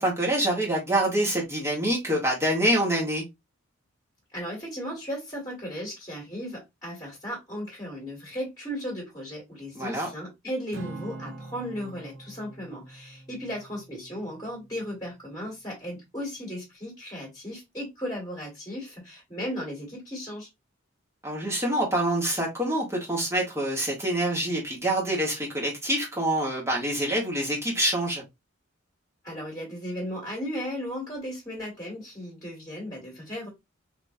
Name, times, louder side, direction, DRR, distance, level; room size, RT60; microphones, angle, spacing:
voice 1, 0.0-3.2 9.7-10.1 21.2-28.2, right 1 dB, 15° right, 1.3 m, -26 dB
voice 2, 4.3-20.5 29.2-33.5, equal, 20° left, 1.8 m, -36 dB
Acoustic guitar / Strum, 10.7-15.2, right 3 dB, 55° right, 0.8 m, -44 dB
3.5 x 2.9 x 2.6 m
head